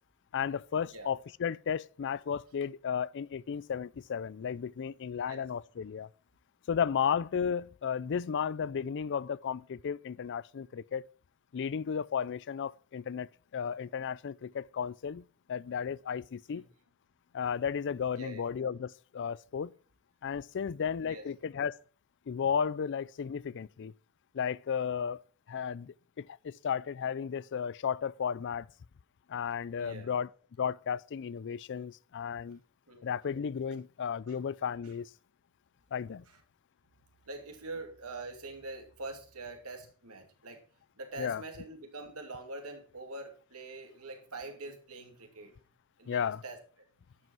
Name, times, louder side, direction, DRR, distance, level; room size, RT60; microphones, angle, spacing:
voice 1, 0.3-6.1 6.7-11.1 11.5-15.2 15.5-16.6 17.3-19.7 20.2-21.8 22.3-23.9 24.3-25.2 25.5-28.7 29.3-30.3 30.6-32.6 33.0-35.1 35.9-36.2 41.2-41.4 46.1-46.4, left 7 dB, 55° left, 0.4 m, -34 dB
voice 2, 18.1-18.5 21.0-21.2 29.8-30.1 32.9-33.0 37.3-40.6 41.0-45.6 46.0-46.6, right 2 dB, 80° right, 2.5 m, -44 dB
11.5 x 7.9 x 4.5 m
head